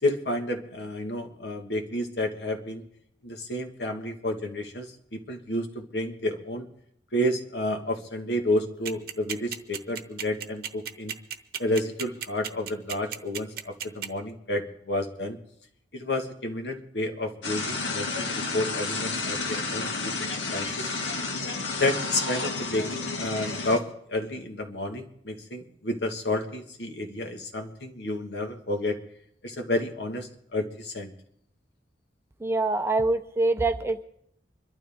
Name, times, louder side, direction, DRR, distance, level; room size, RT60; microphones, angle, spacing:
voice 1, 0.0-2.8 3.2-4.9 5.1-6.7 7.1-11.1 11.6-15.4 15.9-19.9 20.2-20.9 21.8-29.0 29.4-31.1, left 1 dB, 65° left, 5 dB, 1.6 m, -30 dB
sound 1, 8.9-14.1, right 8 dB, 55° right, 0.9 m, -33 dB
sound 2, 17.4-23.8, left 3 dB, 85° left, 1.7 m, -31 dB
voice 2, 32.4-34.0, right 2 dB, 15° right, 8 dB, 0.5 m, -25 dB
25.5 x 12.0 x 3.6 m, 0.70 s
head